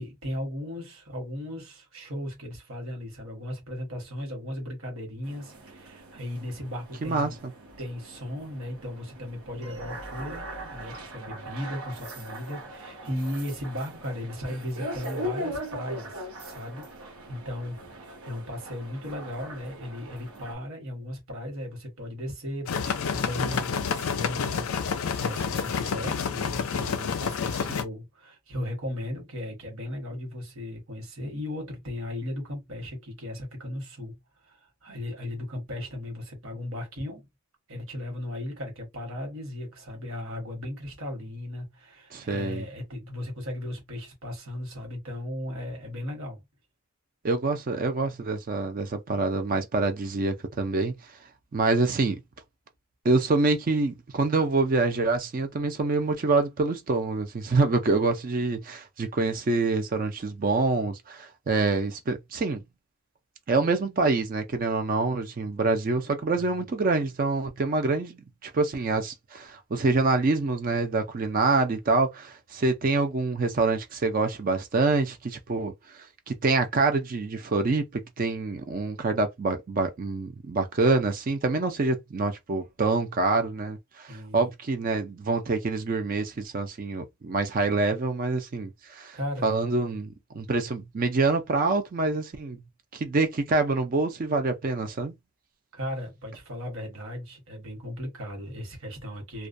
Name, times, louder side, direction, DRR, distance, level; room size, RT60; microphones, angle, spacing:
voice 1, 0.0-7.4 7.8-34.2 34.4-37.3 37.7-46.4 66.2-66.6 84.1-84.5 89.1-89.5 95.7-99.5, left 1 dB, 60° right, 1.2 m, -36 dB
sound 1, 5.2-20.6, equal, 80° right, 0.9 m, -40 dB
voice 2, 7.0-7.3 42.1-42.6 47.2-50.9 51.5-52.2 53.0-62.6 63.5-92.6 92.9-95.1, right 3 dB, 40° right, 0.4 m, -26 dB
sound 2, 22.7-27.8, left 6 dB, 70° left, 0.4 m, -29 dB
2.3 x 2.1 x 2.5 m
head